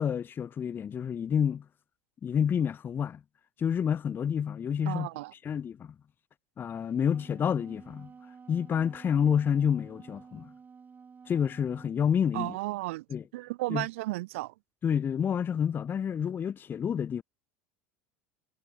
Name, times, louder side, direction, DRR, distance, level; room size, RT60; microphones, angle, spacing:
voice 1, 0.0-1.6 2.2-3.2 3.6-5.1 5.4-5.9 6.6-8.1 8.5-10.5 11.3-12.5 13.1-13.2 13.7-13.9 14.8-17.2, left 8 dB, 30° left, 0.4 m, -28 dB
voice 2, 4.9-5.3 12.3-13.0 13.3-14.5, right 20 dB, 75° right, 0.5 m, -33 dB
Wind instrument woodwind instrument, 6.8-12.0, right 5 dB, 25° right, 2.1 m, -52 dB
hypercardioid pair, 80°, 7 cm